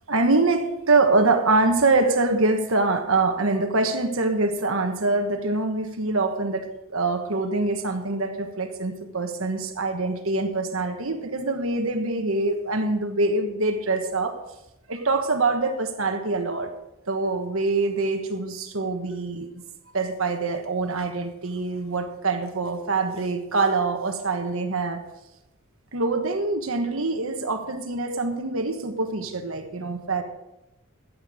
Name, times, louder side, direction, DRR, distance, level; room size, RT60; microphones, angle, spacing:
voice 1, 0.1-14.4 14.9-16.7 17.1-19.6 19.9-25.0 25.9-30.2, right 3 dB, 65° right, 5 dB, 1.3 m, -24 dB
14.5 x 8.8 x 5.0 m, 0.93 s
head